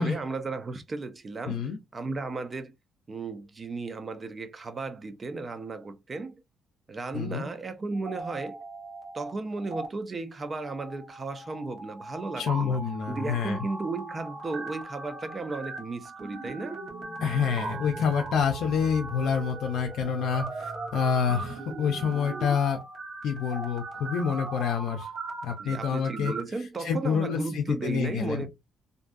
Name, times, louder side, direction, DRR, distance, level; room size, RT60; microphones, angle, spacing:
voice 1, 0.0-2.7 3.1-6.4 6.9-8.6 9.1-12.8 13.1-16.8 25.6-28.5, right 3 dB, 35° right, 0.5 m, -35 dB
voice 2, 1.5-1.8 7.1-7.5 12.4-13.6 17.2-22.8 23.2-25.1 25.4-26.3 26.8-28.5, left 6 dB, 80° left, 0.4 m, -27 dB
sound 1, 7.9-9.3 9.6-9.9 10.4-26.4, right 3 dB, 55° right, 1.0 m, -39 dB
2.6 x 2.3 x 2.5 m
cardioid pair, 90°, 0 cm